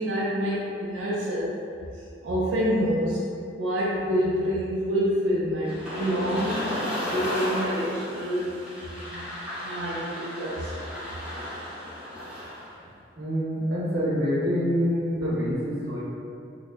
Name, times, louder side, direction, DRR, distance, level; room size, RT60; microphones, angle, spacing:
voice 1, 0.0-1.5 2.2-3.2 3.6-6.6 7.1-8.5 8.9-9.3 9.6-10.7, equal, 90° right, -7 dB, 0.5 m, -27 dB
sound 1, 5.7-12.7, left 1 dB, 5° right, 0.7 m, -34 dB
voice 2, 13.2-16.0, equal, 55° right, -7 dB, 0.8 m, -26 dB
4.2 x 2.1 x 2.4 m, 2.4 s
head